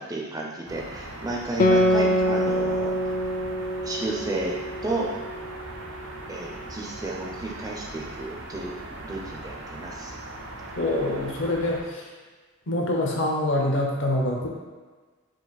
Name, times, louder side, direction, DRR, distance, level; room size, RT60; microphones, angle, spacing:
voice 1, 0.0-3.1 3.8-4.5 4.8-5.1 6.3-8.8 9.0-10.1, right 2 dB, 15° right, -2 dB, 0.5 m, -32 dB
sound 1, 0.7-11.8, right 2 dB, 65° right, 0.5 m, -40 dB
Guitar, 1.6-6.5, equal, 40° left, 0.3 m, -25 dB
voice 2, 10.8-12.0 12.7-14.5, left 1 dB, 60° left, -1 dB, 0.7 m, -25 dB
4.6 x 2.4 x 4.1 m, 1.4 s
head